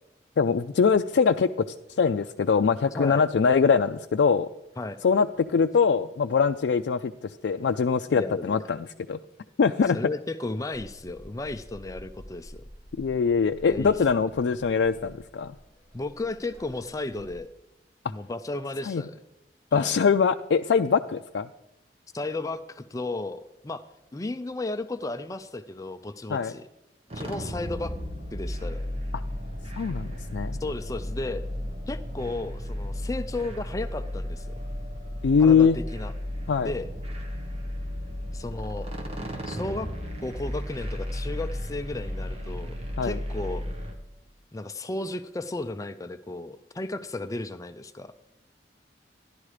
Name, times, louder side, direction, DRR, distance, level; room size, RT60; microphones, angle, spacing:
voice 1, 0.4-1.7 2.0-4.5 5.0-9.2 9.6-10.0 13.0-15.5 18.9-19.0 19.7-21.5 26.3-26.5 29.8-30.6 35.2-35.8 36.5-36.7 43.0-43.2, left 5 dB, 85° left, 6 dB, 0.4 m, -23 dB
voice 2, 2.9-3.3 4.8-5.0 8.2-8.6 9.9-12.6 13.7-14.0 15.9-17.5 18.1-19.2 19.7-20.0 22.1-23.8 24.1-26.7 27.1-27.9 28.3-28.9 30.6-31.5 31.9-34.5 35.4-36.1 36.6-36.9 38.3-38.9 39.5-39.9 40.2-42.7 43.0-43.6 44.5-48.1, left 2 dB, 20° left, 10 dB, 0.4 m, -34 dB
sound 1, 10.7-17.4, equal, 5° left, 3.5 m, -49 dB
sound 2, 27.1-44.0, equal, 35° right, 1.8 m, -34 dB
13.5 x 11.0 x 4.9 m, 0.91 s
head